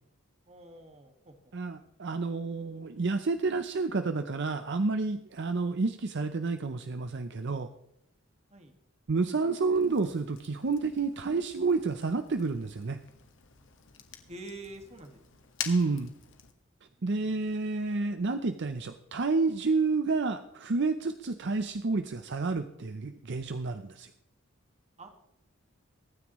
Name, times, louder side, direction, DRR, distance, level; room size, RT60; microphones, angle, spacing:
voice 1, 0.5-1.3 6.2-6.3 8.5-8.7 14.3-15.2 16.9-17.4 25.0-25.1, right 2 dB, 30° right, 5 dB, 1.8 m, -47 dB
voice 2, 1.5-7.7 9.1-13.0 15.6-16.1 17.0-24.1, right 3 dB, 60° right, 9 dB, 0.6 m, -30 dB
Fire, 9.7-16.5, left 9 dB, 65° left, 1.5 m, -46 dB
23.5 x 9.7 x 3.1 m, 0.82 s
head